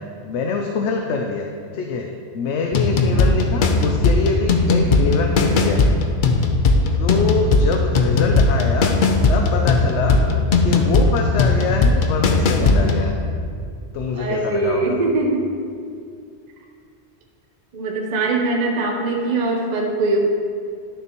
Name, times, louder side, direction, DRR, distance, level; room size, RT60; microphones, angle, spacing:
voice 1, 0.2-1.5 1.7-5.8 6.9-8.9 9.3-10.2 10.6-13.3 13.9-15.0, left 4 dB, 85° left, 3 dB, 0.9 m, -24 dB
sound 1, 2.7-13.1, left 3 dB, 55° left, 0.7 m, -18 dB
voice 2, 14.1-15.5 17.7-20.2, right 2 dB, 45° right, -1 dB, 0.8 m, -22 dB
11.0 x 6.5 x 3.0 m, 2.3 s
omnidirectional pair, 1.1 m